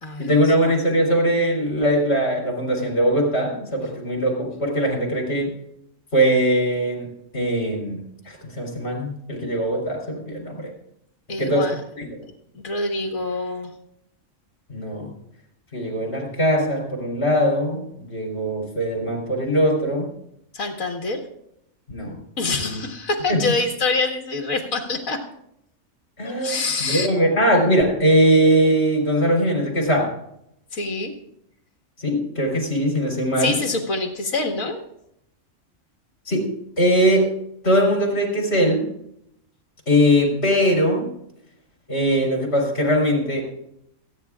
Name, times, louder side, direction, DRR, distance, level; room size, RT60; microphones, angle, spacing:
voice 1, 0.2-5.5 6.1-7.1 7.3-10.7 11.4-11.7 12.0-12.1 14.7-15.1 15.7-20.1 21.9-22.2 22.6-22.8 23.3-23.4 26.2-30.1 32.0-33.6 36.3-36.5 36.8-37.3 37.6-38.8 39.9-41.1 41.9-43.4, equal, 50° left, -1 dB, 3.9 m, -21 dB
voice 2, 11.3-11.8 12.5-13.7 20.5-21.2 22.4-25.2 26.2-27.1 30.7-31.1 33.4-34.8, left 3 dB, 85° left, 2 dB, 2.0 m, -25 dB
28.0 x 9.5 x 2.4 m, 0.78 s
omnidirectional pair, 1.4 m